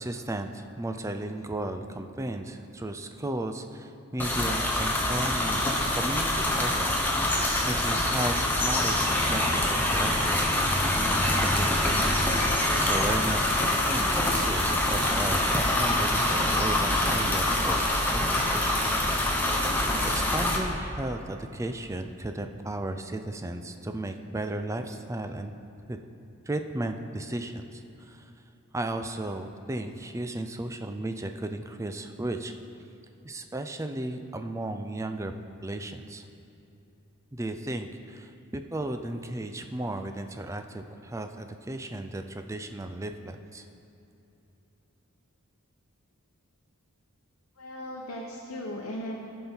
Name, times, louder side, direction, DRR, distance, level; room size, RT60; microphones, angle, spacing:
voice 1, 0.0-10.5 11.3-19.0 19.7-25.5 25.9-26.0 26.5-28.3 28.7-32.5 33.2-35.3 35.6-36.2 37.3-43.6, right 1 dB, 15° right, 7 dB, 0.3 m, -35 dB
sound 1, 4.2-20.6, left 1 dB, 10° left, 0.8 m, -25 dB
voice 2, 47.6-49.3, equal, 65° left, -2 dB, 0.9 m, -37 dB
15.5 x 5.5 x 4.4 m, 2.8 s
head